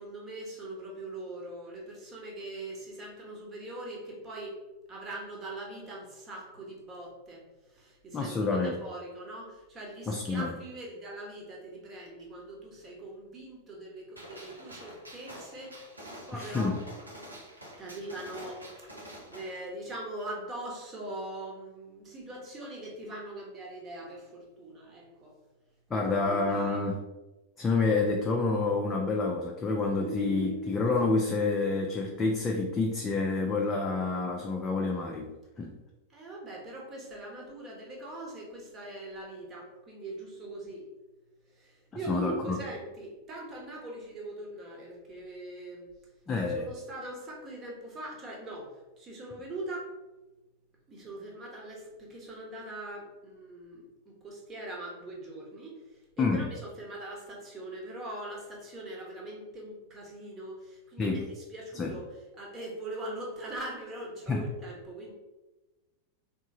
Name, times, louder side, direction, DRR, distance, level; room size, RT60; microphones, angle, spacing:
voice 1, 0.0-4.6 4.9-15.8 16.3-16.8 17.8-25.4 25.9-26.8 36.1-40.9 41.5-46.1 46.4-49.9 50.9-65.1, right 1 dB, 25° right, -1 dB, 1.2 m, -42 dB
voice 2, 8.1-8.7 10.1-10.5 16.3-16.8 25.9-27.0 27.6-35.3 35.6-35.7 42.1-42.6 46.3-46.6 56.2-56.5 61.0-61.3 61.7-61.9 64.3-64.4, left 3 dB, 20° left, 0 dB, 0.5 m, -28 dB
Gunshot gunfire, 14.2-19.6, equal, 85° right, 1.1 m, -47 dB
sound 1, 30.0-33.2, right 2 dB, 65° right, 0.8 m, -41 dB
3.7 x 3.0 x 3.7 m, 1.1 s
figure-of-eight pair, 90°, 0 cm